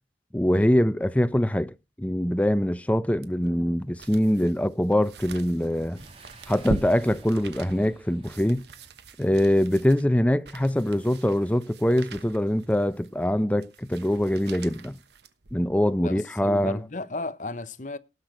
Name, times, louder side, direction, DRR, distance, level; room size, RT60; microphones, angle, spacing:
voice 1, 0.3-6.0 6.5-8.6 9.2-15.0 15.5-16.8, equal, 10° left, 0.5 m, -23 dB
sound 1, 3.2-15.9 16.4-16.5, right 2 dB, 75° right, 1.2 m, -42 dB
Boom, 6.0-9.6, right 2 dB, 30° right, 2.0 m, -51 dB
voice 2, 16.0-18.0, left 2 dB, 45° left, 0.8 m, -34 dB
18.0 x 6.0 x 5.1 m
head